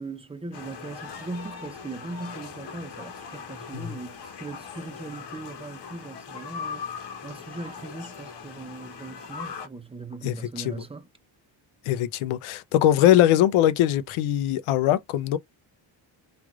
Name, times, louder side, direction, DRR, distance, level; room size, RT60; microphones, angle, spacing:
voice 1, 0.0-6.9 7.2-11.1, right 3 dB, 15° right, 0.4 m, -39 dB
sound 1, 0.5-9.7, left 6 dB, 55° left, 1.0 m, -40 dB
voice 2, 10.2-10.9 11.8-15.4, left 12 dB, 80° left, 0.6 m, -22 dB
3.2 x 2.5 x 2.3 m
cardioid pair, 80°, 48 cm